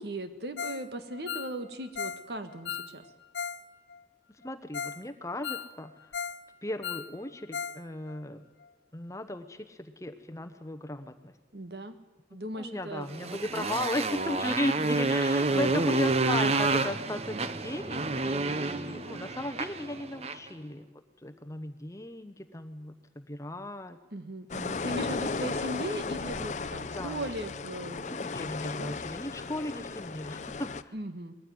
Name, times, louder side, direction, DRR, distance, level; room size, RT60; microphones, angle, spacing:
voice 1, 0.0-3.1 11.5-11.9 12.3-13.4 15.5-15.9 24.1-28.5 28.8-28.9 30.9-31.3, right 1 dB, 65° right, 9 dB, 1.6 m, -38 dB
Ringtone, 0.6-0.9 1.1-3.6 3.9-4.0 4.4-4.5 4.7-5.0 5.3-6.4 6.7-7.8 8.1-8.2 8.6-8.7, left 7 dB, 90° left, 0.6 m, -37 dB
voice 2, 4.4-5.9 6.6-8.5 8.9-11.4 12.5-20.9 21.2-24.0 26.9-27.3 28.1-30.9, left 1 dB, 20° left, 8 dB, 1.0 m, -36 dB
Motorcycle, 13.1-20.5, right 3 dB, 35° right, 0.8 m, -29 dB
sound 1, 24.5-30.8, left 4 dB, 40° left, 0.6 m, -35 dB
20.5 x 14.5 x 9.4 m, 1.2 s
head